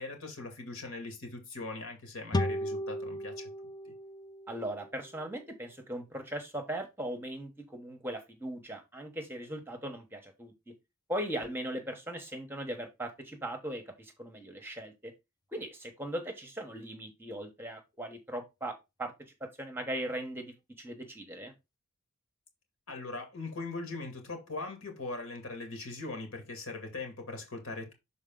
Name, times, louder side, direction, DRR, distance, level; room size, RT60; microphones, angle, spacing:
voice 1, 0.0-3.5 3.9-4.0 22.9-27.9, left 3 dB, 70° left, 2.2 m, -40 dB
sound 1, 2.3-5.7, left 1 dB, 20° left, 0.3 m, -36 dB
voice 2, 4.5-10.7 11.1-15.1 15.5-19.1 19.4-21.5, right 1 dB, 10° right, 1.0 m, -39 dB
6.4 x 4.0 x 3.8 m
head